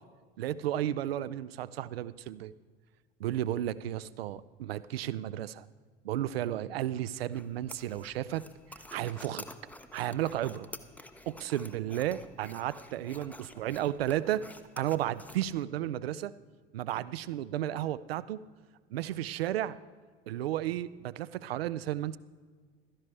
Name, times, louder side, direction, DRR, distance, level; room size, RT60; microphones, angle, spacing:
voice 1, 0.4-2.5 3.2-5.7 6.0-8.4 8.7-9.5 9.9-10.7 11.3-14.4 14.8-16.3 16.7-18.4 18.9-19.8 20.3-22.2, right 12 dB, 75° right, 17 dB, 0.5 m, -33 dB
sound 1, 7.3-15.6, left 1 dB, 5° left, 0.6 m, -50 dB
15.5 x 13.0 x 3.2 m, 1.5 s
figure-of-eight pair, 65°, 31 cm